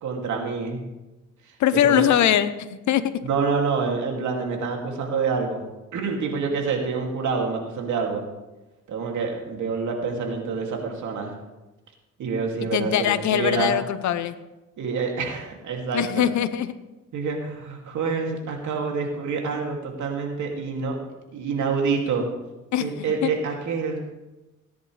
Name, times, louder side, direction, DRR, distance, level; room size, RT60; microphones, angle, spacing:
voice 1, 0.0-0.8 1.9-2.1 3.2-8.2 8.9-11.3 12.2-13.7 14.8-16.3 17.1-21.0 21.3-22.3 22.8-24.0, right 5 dB, 75° right, 1 dB, 2.7 m, -27 dB
voice 2, 1.6-3.2 12.7-14.4 15.9-16.7 22.7-23.3, left 10 dB, 70° left, 13 dB, 0.8 m, -22 dB
17.5 x 10.5 x 3.4 m, 1.0 s
cardioid pair, 90°, 30 cm